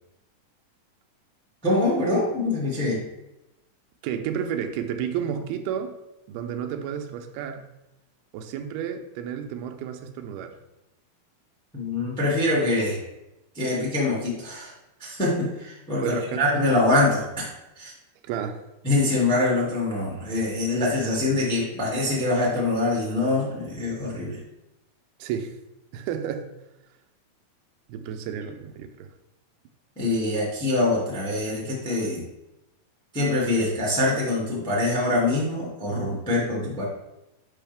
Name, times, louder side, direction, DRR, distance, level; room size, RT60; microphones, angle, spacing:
voice 1, 1.6-3.0 11.7-13.0 13.5-14.7 15.0-17.4 17.8-17.9 18.8-24.4 29.9-32.2 33.1-36.8, left 2 dB, 5° left, -4 dB, 1.0 m, -24 dB
voice 2, 4.0-6.0 6.3-7.7 8.3-10.6 16.0-16.7 18.2-18.6 25.2-25.6 25.9-26.5 27.9-29.1, right 8 dB, 85° right, 6 dB, 2.6 m, -31 dB
8.6 x 5.6 x 3.5 m, 0.93 s
omnidirectional pair, 4.4 m